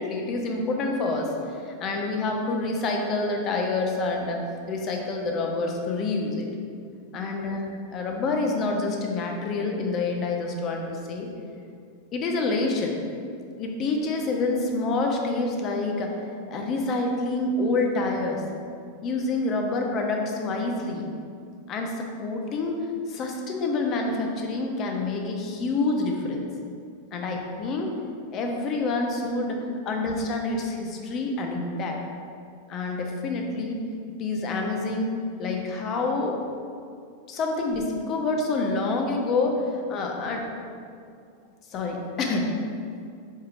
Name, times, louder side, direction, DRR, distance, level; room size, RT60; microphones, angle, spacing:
voice 1, 0.0-1.3 1.6-6.5 7.1-11.3 12.1-13.0 13.6-16.2 16.5-18.4 19.0-21.1 21.7-22.8 23.1-26.5 27.1-27.9 28.3-29.6 29.9-32.0 32.7-33.8 34.2-35.1 35.4-36.4 37.3-40.4 41.7-42.5, left 3 dB, 40° left, 1 dB, 0.7 m, -27 dB
4.6 x 4.6 x 2.5 m, 2.4 s
hypercardioid pair, 100°, 0 cm